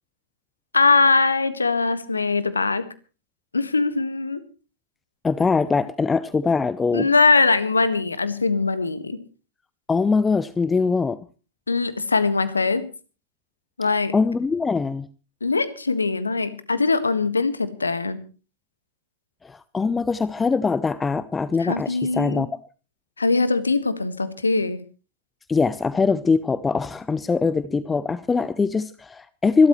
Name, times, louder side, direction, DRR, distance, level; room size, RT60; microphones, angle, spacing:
voice 1, 0.7-2.9 3.5-4.4 6.9-9.2 11.7-12.9 13.8-14.1 15.4-18.2 21.6-22.5 23.2-24.8, left 4 dB, 80° left, 14 dB, 1.6 m, -21 dB
voice 2, 5.2-7.1 9.9-11.2 14.1-15.1 19.4-22.5 25.5-29.7, left 4 dB, 15° left, 17 dB, 0.7 m, -22 dB
26.0 x 13.0 x 3.2 m, 0.35 s
figure-of-eight pair, 95°, 0 cm